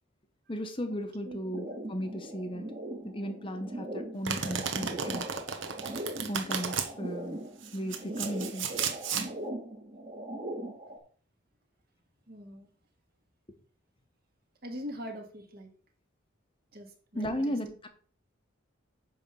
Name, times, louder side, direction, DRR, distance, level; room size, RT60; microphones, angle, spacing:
voice 1, 0.5-2.7 3.0-5.3 6.3-7.4 7.7-8.8 9.1-9.4 17.1-17.9, equal, 25° left, 7 dB, 0.9 m, -35 dB
sound 1, 1.5-11.0, right 1 dB, 30° right, 1.8 m, -40 dB
Domestic sounds home sounds, 4.2-6.9 7.6-9.3, right 7 dB, 70° right, 1.2 m, -33 dB
voice 2, 12.3-12.7 14.6-15.7 16.7-17.6, equal, 50° right, 3 dB, 2.0 m, -42 dB
9.9 x 3.5 x 7.0 m, 0.43 s
head